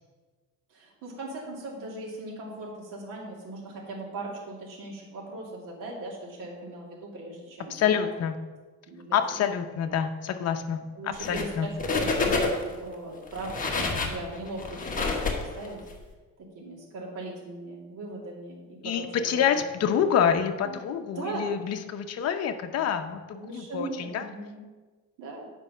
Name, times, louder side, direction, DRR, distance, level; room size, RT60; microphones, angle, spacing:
voice 1, 0.7-8.1 8.9-9.4 10.9-11.7 12.0-15.8 16.4-19.6 20.6-20.8 21.1-21.5 23.4-24.6 25.2-25.5, right 2 dB, 70° right, -3 dB, 2.4 m, -39 dB
voice 2, 7.7-8.4 9.1-10.8 11.0-11.7 18.8-24.3, left 8 dB, 50° left, 7 dB, 0.8 m, -27 dB
sound 1, 11.1-11.5 11.8-12.8 13.3-15.9, left 3 dB, 25° left, 1.2 m, -28 dB
8.7 x 5.4 x 5.6 m, 1.3 s
cardioid pair, 145°, 33 cm